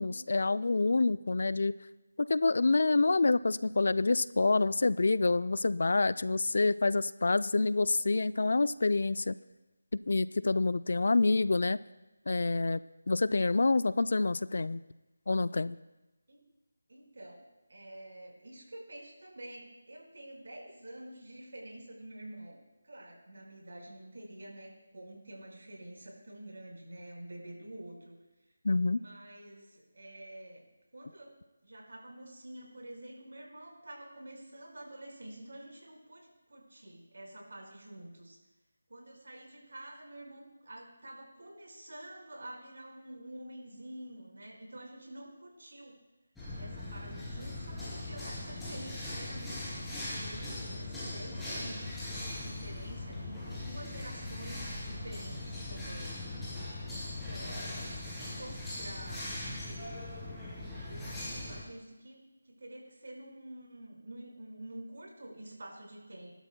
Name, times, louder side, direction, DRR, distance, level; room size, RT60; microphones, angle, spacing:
voice 1, 0.0-1.7 2.2-9.4 10.1-11.8 12.3-12.8 13.1-14.8 15.3-15.8 28.6-29.0, left 3 dB, 65° left, 17 dB, 0.3 m, -27 dB
voice 2, 16.9-22.6 22.8-28.2 28.9-31.3 31.6-38.4 38.9-46.0 46.6-49.7 50.1-56.2 56.9-59.3 59.6-60.0 60.8-62.2 62.4-66.3, right 1 dB, 70° right, -1 dB, 5.0 m, -48 dB
sound 1, 46.4-61.6, left 2 dB, 5° left, 3.2 m, -40 dB
20.0 x 12.0 x 2.2 m, 1.0 s
figure-of-eight pair, 160°, 0 cm